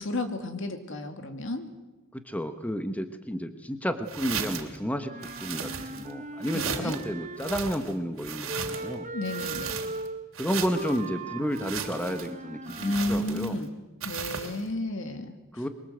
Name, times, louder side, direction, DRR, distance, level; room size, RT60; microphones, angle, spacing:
voice 1, 0.0-1.7 6.5-7.0 9.1-9.8 12.8-13.7 14.0-15.4, left 1 dB, 65° left, 6 dB, 2.5 m, -32 dB
voice 2, 2.1-5.1 5.4-9.1 10.4-13.6 15.5-15.7, equal, 5° left, 8 dB, 1.3 m, -31 dB
sound 1, 4.1-4.8 5.2-6.1 6.4-7.0 7.4-8.9 9.2-10.1 10.3-11.0 11.5-12.3 12.7-13.6 14.0-14.6, right 7 dB, 75° right, 2.9 m, -36 dB
Wind instrument woodwind instrument, 5.0-7.9 8.5-13.3, right 2 dB, 40° right, 1.4 m, -39 dB
25.0 x 23.0 x 8.0 m, 1.1 s
head